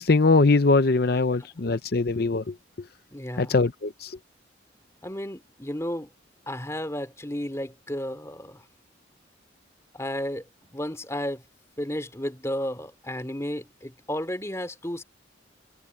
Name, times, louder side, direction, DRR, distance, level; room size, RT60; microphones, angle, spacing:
voice 1, 0.0-2.4 3.4-3.9, left 3 dB, 50° left, 0.7 m, -21 dB
voice 2, 1.1-1.5 3.1-3.6 5.0-6.1 6.5-8.6 9.9-11.4 11.8-15.0, left 1 dB, 15° left, 2.7 m, -33 dB
head